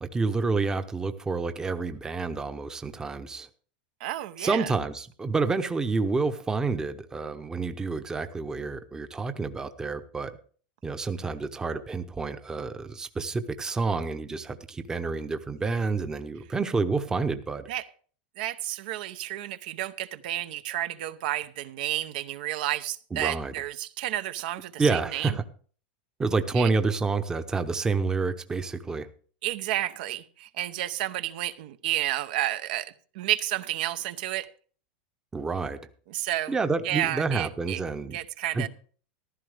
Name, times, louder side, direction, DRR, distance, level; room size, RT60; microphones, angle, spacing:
voice 1, 0.0-3.5 4.4-10.3 10.8-17.6 23.1-23.5 24.8-25.4 26.2-29.1 35.3-35.8 36.5-38.2 38.5-38.7, right 4 dB, 10° right, 9 dB, 0.8 m, -28 dB
voice 2, 4.0-4.7 17.7-17.9 18.4-25.3 26.6-26.7 29.4-34.5 36.1-36.6 36.8-37.8 38.1-38.7, right 14 dB, 65° right, 12 dB, 0.8 m, -31 dB
14.5 x 12.0 x 3.4 m, 0.43 s
supercardioid pair, 145°, 5 cm